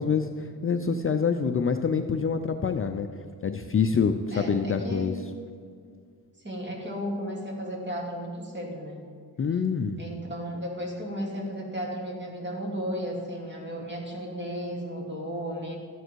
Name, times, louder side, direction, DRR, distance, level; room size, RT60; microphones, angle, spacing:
voice 1, 0.0-3.1 3.4-5.1 9.4-10.0, left 6 dB, 35° left, 6 dB, 0.5 m, -26 dB
voice 2, 4.3-5.1 6.4-9.0 10.0-15.8, equal, 25° right, -2 dB, 2.8 m, -34 dB
13.0 x 9.2 x 4.6 m, 2.1 s
wide cardioid pair, 120°, 39 cm